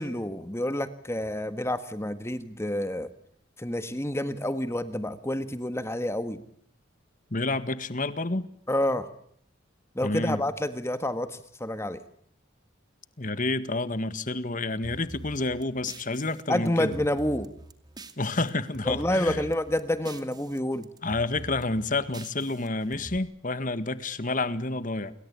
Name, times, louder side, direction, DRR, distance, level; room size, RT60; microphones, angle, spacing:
voice 1, 0.0-3.1 3.6-6.4 8.7-9.1 9.9-12.0 16.5-17.5 18.9-20.9, left 1 dB, 15° left, 11 dB, 1.5 m, -28 dB
voice 2, 7.3-8.5 10.0-10.4 13.2-16.9 18.2-19.4 21.0-25.1, left 2 dB, 40° left, 13 dB, 1.8 m, -29 dB
sound 1, 14.8-18.5 18.7-20.6 20.8-23.2, right 1 dB, 20° right, 2.4 m, -44 dB
29.0 x 23.0 x 8.7 m, 0.66 s
head